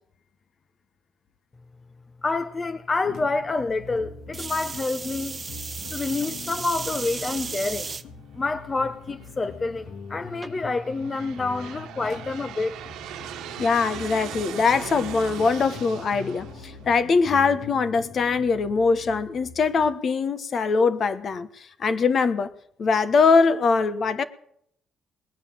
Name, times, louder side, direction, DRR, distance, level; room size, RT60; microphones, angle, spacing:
voice 1, 2.2-5.4 5.9-7.9 8.3-12.8, left 3 dB, 30° left, 0.8 m, -28 dB
sound 1, 3.0-19.9, left 5 dB, 75° left, 1.9 m, -43 dB
sound 2, 4.3-8.0 8.7-9.1 10.4-10.5, right 4 dB, 35° right, 0.8 m, -35 dB
Aircraft, 8.8-9.3 10.1-17.6, right 10 dB, 90° right, 1.2 m, -40 dB
voice 2, 13.6-22.5 22.8-24.2, left 4 dB, 50° left, 1.2 m, -22 dB
19.5 x 9.1 x 7.5 m
cardioid pair, 90°, 0 cm